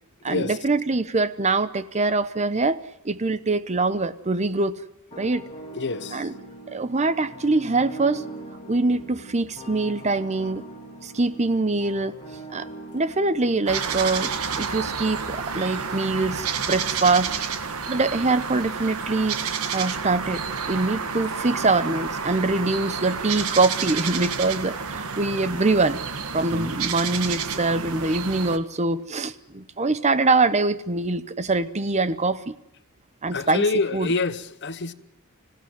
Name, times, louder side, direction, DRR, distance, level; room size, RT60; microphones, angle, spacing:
voice 1, 0.2-2.8 3.0-4.8 5.2-5.4 6.1-6.4 6.7-8.2 8.7-10.6 11.0-12.2 12.5-12.7 12.9-17.3 17.8-19.4 19.7-26.0 26.3-32.5 33.2-34.1, right 3 dB, 30° right, 0.8 m, -24 dB
sound 1, 5.1-14.0, right 1 dB, 30° left, 3.3 m, -41 dB
voice 2, 5.7-6.2 33.3-34.9, left 3 dB, 55° left, 1.1 m, -26 dB
sound 2, 13.7-28.6, right 6 dB, 80° right, 1.5 m, -30 dB
26.0 x 16.5 x 9.6 m
head